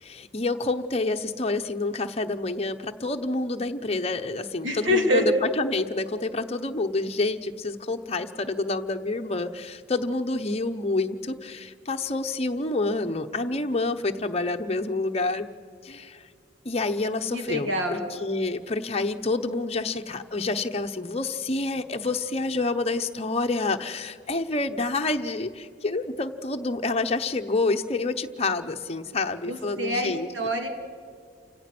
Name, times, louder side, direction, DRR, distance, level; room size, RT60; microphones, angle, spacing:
voice 1, 0.0-15.5 15.8-16.2 16.6-30.3, left 3 dB, 30° left, 6 dB, 0.9 m, -28 dB
voice 2, 4.6-5.3 17.3-18.0 29.5-30.7, left 1 dB, 70° right, 4 dB, 2.5 m, -26 dB
29.5 x 17.0 x 6.1 m, 2.3 s
head